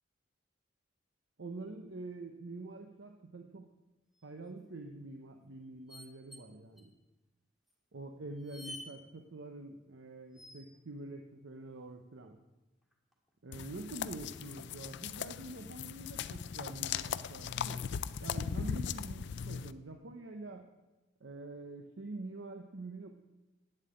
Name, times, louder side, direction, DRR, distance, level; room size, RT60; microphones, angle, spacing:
voice 1, 1.4-3.7 4.2-6.9 7.9-12.4 13.4-17.8 18.2-20.7 21.2-23.1, right 2 dB, 75° right, 4 dB, 0.8 m, -46 dB
sound 1, 4.1-4.5 5.9-6.5 6.8-6.9 7.7-7.8 8.3-8.9 10.3-10.8 12.8-13.3 14.9-15.0 15.2-15.3 16.1-16.9 17.2-17.4, left 1 dB, ahead, 1.9 m, -51 dB
sound 2, 13.5-19.7, left 7 dB, 65° left, 0.4 m, -39 dB
8.9 x 7.5 x 8.8 m, 1.1 s
head